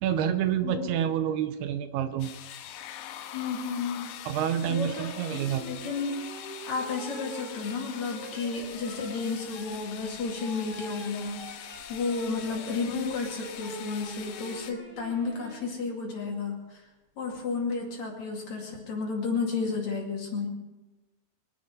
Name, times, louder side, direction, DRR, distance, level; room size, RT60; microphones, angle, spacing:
voice 1, 0.0-2.3 4.3-5.6, right 10 dB, 80° right, 10 dB, 2.7 m, -28 dB
sound 1, 2.2-14.7, left 11 dB, 85° left, 2.9 m, -44 dB
voice 2, 3.3-4.1 4.7-6.2 6.7-16.8 17.2-20.5, left 4 dB, 50° left, 0 dB, 3.3 m, -32 dB
sound 2, 4.5-15.7 17.3-17.8, equal, 5° right, 2.5 m, -45 dB
23.5 x 10.5 x 5.4 m, 1.1 s
omnidirectional pair, 4.7 m